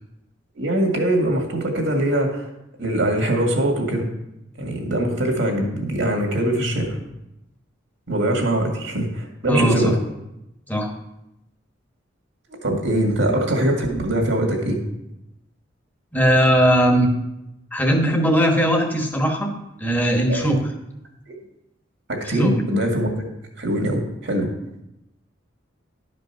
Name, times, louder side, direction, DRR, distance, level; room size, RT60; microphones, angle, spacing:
voice 1, 0.6-2.5 2.8-4.1 4.6-7.0 8.1-10.0 12.6-14.8 20.3-20.6 21.3-21.4 22.1-23.1 23.6-24.5, right 1 dB, 70° right, 1 dB, 2.0 m, -22 dB
voice 2, 9.5-9.9 10.7-10.9 16.1-17.1 17.7-19.5 19.8-20.7 22.3-22.6, equal, 10° left, 2 dB, 1.3 m, -19 dB
11.0 x 5.3 x 5.7 m, 0.88 s
head